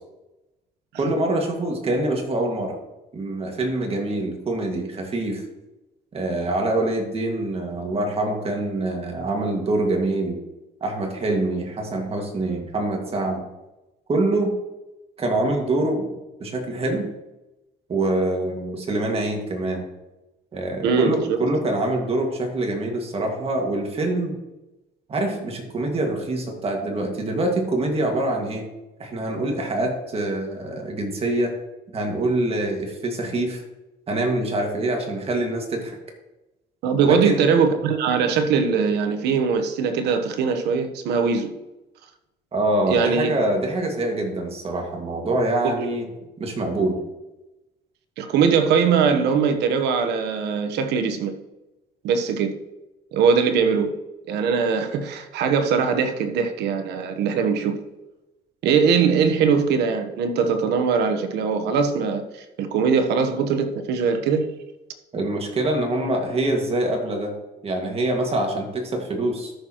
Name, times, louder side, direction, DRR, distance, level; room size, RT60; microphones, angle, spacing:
voice 1, 0.9-2.8 3.1-5.4 6.1-10.4 10.8-13.4 14.1-14.5 15.2-16.1 16.4-17.1 17.9-19.8 20.5-24.3 25.1-28.7 29.0-31.5 31.9-33.6 34.1-36.0 37.0-37.5 42.5-46.1 46.4-47.0 65.1-67.3 67.6-69.5, right 2 dB, 35° right, 2.0 m, -25 dB
voice 2, 20.8-21.4 36.8-41.5 42.9-43.4 45.6-45.8 48.2-51.3 52.0-52.5 53.1-53.9 54.3-57.7 58.6-62.2 62.6-64.5, right 6 dB, 80° right, 1.1 m, -21 dB
13.5 x 6.5 x 3.0 m
cardioid pair, 110°, 17 cm